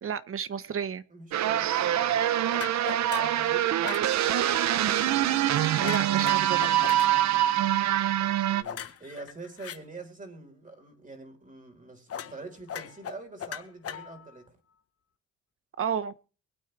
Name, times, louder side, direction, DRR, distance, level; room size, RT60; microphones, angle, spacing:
voice 1, 0.0-1.0 5.8-6.9 15.8-16.1, right 7 dB, 45° right, 14 dB, 1.1 m, -32 dB
voice 2, 1.1-2.2 3.2-3.7 8.2-14.5, right 3 dB, 25° right, 4 dB, 4.5 m, -45 dB
sound 1, 1.3-8.6, right 12 dB, 65° right, 0.8 m, -25 dB
sound 2, 2.5-3.4 3.8-4.1 5.8-7.1 8.6-9.8 12.1-12.4 12.7-14.4, left 8 dB, 50° left, 1.2 m, -38 dB
23.5 x 8.7 x 3.4 m, 0.37 s
cardioid pair, 90°, 30 cm